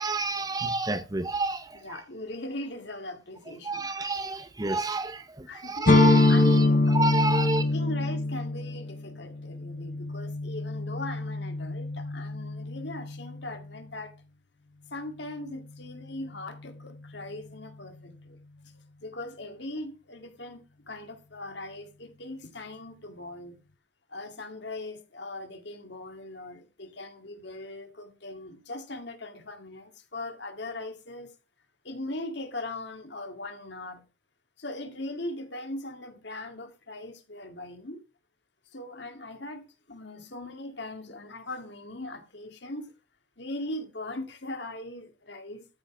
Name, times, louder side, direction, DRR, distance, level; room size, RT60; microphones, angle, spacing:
voice 1, 0.0-2.0 3.6-7.6, right 2 dB, 20° right, 0.6 m, -29 dB
voice 2, 1.7-3.9 5.5-5.9 6.3-7.0 7.2-14.1 14.9-18.4 18.7-23.6 24.1-31.3 31.8-34.0 34.6-38.0 38.7-42.9 43.4-45.7, left 2 dB, 60° left, 2.0 m, -40 dB
sound 1, 5.9-13.6, left 2 dB, 40° left, 0.5 m, -25 dB
13.5 x 5.4 x 6.0 m
head